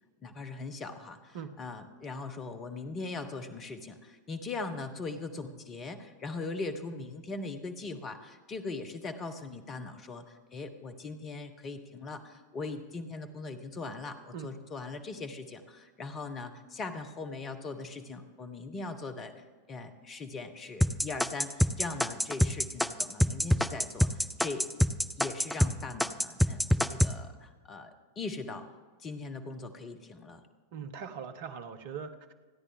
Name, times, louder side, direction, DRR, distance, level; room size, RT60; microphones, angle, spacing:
voice 1, 0.2-19.3 19.7-24.7 25.2-30.4, left 3 dB, 25° left, 8 dB, 1.4 m, -40 dB
sound 1, 20.8-25.7 26.0-27.1, left 1 dB, 5° left, 0.6 m, -25 dB
voice 2, 30.7-32.3, right 7 dB, 50° right, 9 dB, 1.1 m, -41 dB
28.0 x 10.0 x 3.7 m, 1.4 s
figure-of-eight pair, 90°, 0 cm